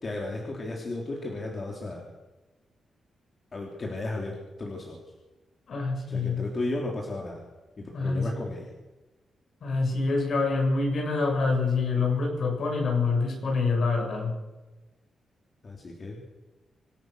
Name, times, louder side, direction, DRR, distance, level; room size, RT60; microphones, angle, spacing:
voice 1, 0.0-2.0 3.5-5.0 6.1-7.4 7.8-8.7 15.6-16.2, left 2 dB, 30° left, 0 dB, 3.2 m, -34 dB
voice 2, 5.7-6.5 7.9-8.2 9.6-14.3, left 3 dB, 50° left, 1 dB, 6.7 m, -26 dB
26.0 x 15.5 x 6.6 m, 1.1 s
wide cardioid pair, 180°, 0 cm